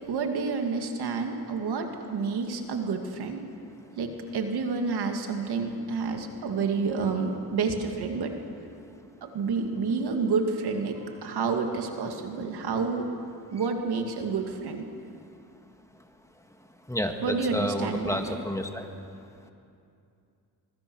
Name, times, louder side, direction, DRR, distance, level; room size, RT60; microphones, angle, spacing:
voice 1, 0.1-3.4 4.0-8.3 9.2-13.1 13.5-14.8 17.2-18.3, right 4 dB, 85° right, 4 dB, 2.3 m, -29 dB
voice 2, 16.9-18.9, equal, 10° left, 4 dB, 1.9 m, -30 dB
25.0 x 22.0 x 6.3 m, 2.5 s
cardioid pair, 95°, 38 cm